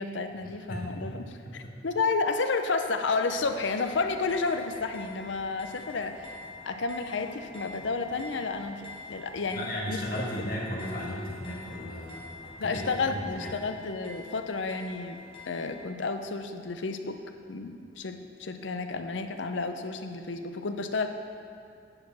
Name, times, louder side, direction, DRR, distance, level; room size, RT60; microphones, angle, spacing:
voice 1, 0.0-6.4 6.7-10.0 10.4-10.5 12.6-15.2 15.5-17.2 17.5-21.1, left 4 dB, 70° left, 7 dB, 0.6 m, -31 dB
voice 2, 0.7-1.2 1.6-1.7 9.5-13.5, equal, 50° left, -3 dB, 1.6 m, -35 dB
sound 1, 3.3-15.9, left 3 dB, 30° left, 1.2 m, -46 dB
9.7 x 4.9 x 6.1 m, 2.3 s
head